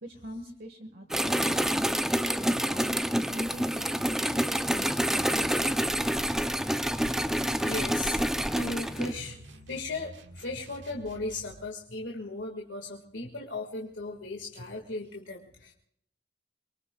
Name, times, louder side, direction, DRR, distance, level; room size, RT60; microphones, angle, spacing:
voice 1, 0.0-3.0 3.3-5.9 9.1-9.3, equal, 55° right, 3 dB, 1.6 m, -45 dB
sound 1, 1.1-9.1, equal, 5° right, 0.5 m, -27 dB
sound 2, 4.1-11.6, right 1 dB, 75° right, 1.7 m, -49 dB
voice 2, 7.0-8.2 8.5-9.4 9.7-15.7, left 2 dB, 85° left, 1 dB, 1.9 m, -37 dB
24.0 x 23.0 x 2.3 m, 0.70 s
head